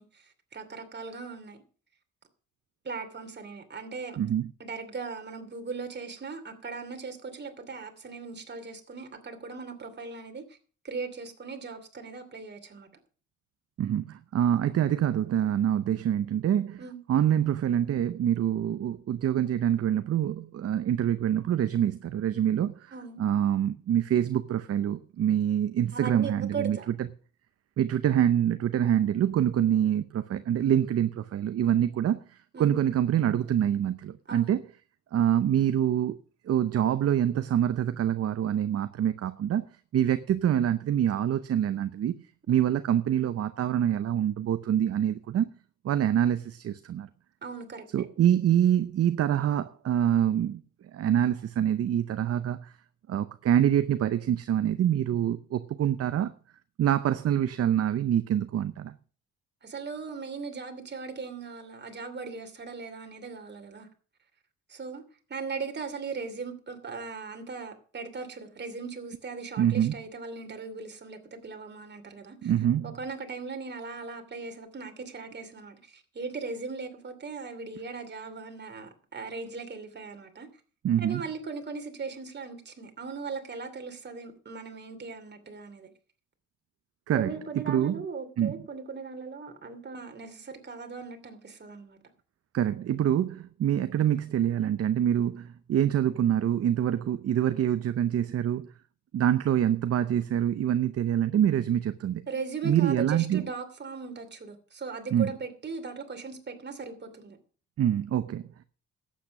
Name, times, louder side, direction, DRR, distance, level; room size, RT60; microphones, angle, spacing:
voice 1, 0.0-1.6 2.8-4.2 4.6-10.6 10.8-12.9 16.8-17.0 22.9-23.2 25.9-26.9 32.5-32.8 34.3-34.6 42.5-42.6 47.4-48.1 59.6-63.9 64.7-65.0 65.3-72.5 72.8-80.5 81.0-85.9 87.1-92.0 102.3-107.4, right 4 dB, 35° right, 2.7 m, -38 dB
voice 2, 4.2-4.5 13.8-16.8 17.1-26.8 27.8-34.6 35.1-36.1 36.5-39.6 39.9-42.1 42.5-45.5 45.8-47.1 47.9-50.6 50.9-52.7 53.1-56.3 56.8-58.9 69.6-70.0 72.4-72.9 80.8-81.2 87.1-87.3 87.7-88.0 88.4-88.6 92.5-98.7 99.1-102.2 102.6-103.5 105.1-105.3 107.8-108.5, right 10 dB, 50° right, 0.7 m, -25 dB
12.0 x 8.5 x 5.9 m
cardioid pair, 90°, 30 cm